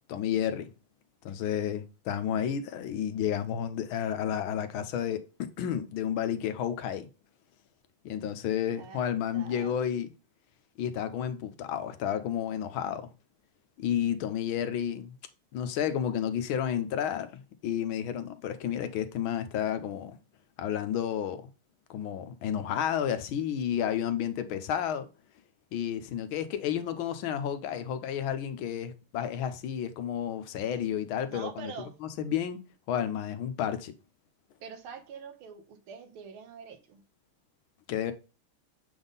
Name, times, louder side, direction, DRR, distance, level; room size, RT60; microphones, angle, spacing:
voice 1, 0.1-0.7 1.2-7.1 8.0-10.1 10.8-13.1 13.8-15.1 15.5-20.2 20.6-21.5 21.9-25.1 25.7-31.7 32.2-33.9 37.9-38.1, left 9 dB, 75° left, 1.6 m, -31 dB
voice 2, 8.8-9.8 31.3-31.9 34.6-37.0, right 6 dB, 85° right, 1.9 m, -45 dB
7.8 x 3.6 x 3.9 m
omnidirectional pair, 2.3 m